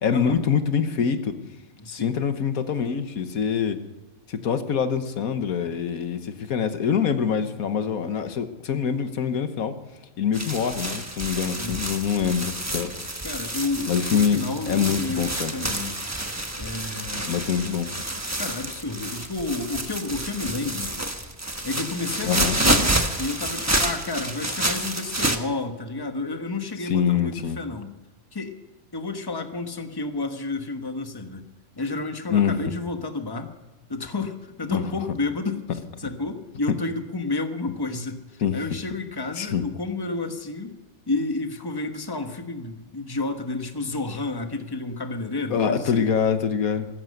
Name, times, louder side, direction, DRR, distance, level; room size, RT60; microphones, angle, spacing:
voice 1, 0.0-1.3 1.9-3.8 4.3-9.8 10.2-13.0 13.9-14.4 14.7-15.5 17.3-17.9 22.3-22.6 26.9-27.6 32.3-32.5 34.7-34.8 38.4-38.6 39.4-39.6 45.5-46.9, left 7 dB, 85° left, 9 dB, 1.6 m, -24 dB
voice 2, 1.8-2.2 11.6-11.8 13.2-16.0 16.6-17.3 18.4-20.9 21.6-27.9 28.3-28.6 28.9-31.4 31.7-33.5 33.9-35.6 36.0-40.8 41.1-46.1, left 3 dB, 15° left, 6 dB, 1.2 m, -31 dB
sound 1, 10.3-25.4, right 1 dB, 15° right, 1.0 m, -28 dB
15.0 x 14.5 x 6.6 m, 1.2 s
omnidirectional pair, 1.5 m